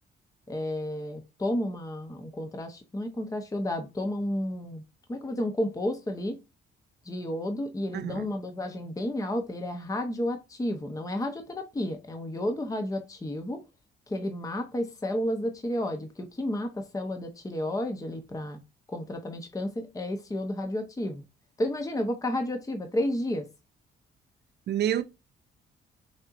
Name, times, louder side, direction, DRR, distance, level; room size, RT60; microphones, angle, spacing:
voice 1, 0.5-4.8 5.1-6.4 7.0-13.6 14.1-18.6 18.9-21.2 21.6-23.5, left 1 dB, 15° left, 0.8 m, -31 dB
voice 2, 7.9-8.3 24.7-25.0, right 10 dB, 60° right, 0.6 m, -28 dB
6.3 x 2.8 x 2.5 m
cardioid pair, 90°, 20 cm